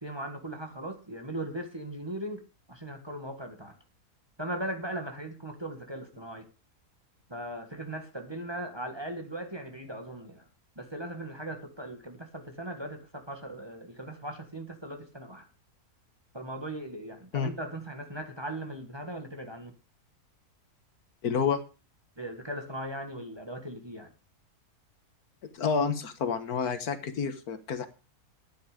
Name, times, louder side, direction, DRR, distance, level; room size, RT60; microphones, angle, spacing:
voice 1, 0.0-2.4 2.7-3.8 4.4-6.5 7.3-10.5 10.8-15.5 16.3-19.7 22.2-24.1, right 1 dB, 15° right, 1.6 m, -38 dB
voice 2, 21.2-21.6 25.5-27.9, left 6 dB, 75° left, 1.7 m, -29 dB
12.5 x 9.6 x 5.0 m
omnidirectional pair, 1.6 m